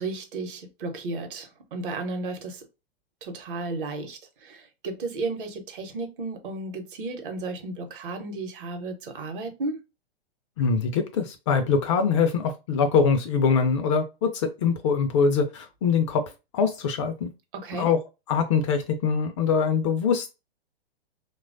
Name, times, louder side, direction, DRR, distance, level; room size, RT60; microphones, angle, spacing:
voice 1, 0.0-2.6 3.2-9.8 17.5-17.9, right 3 dB, 55° right, 0.8 m, -34 dB
voice 2, 10.6-16.2 16.5-17.3 17.8-18.0 18.3-20.3, left 5 dB, 30° left, 0.4 m, -23 dB
3.0 x 2.3 x 2.5 m
figure-of-eight pair, 110°, 31 cm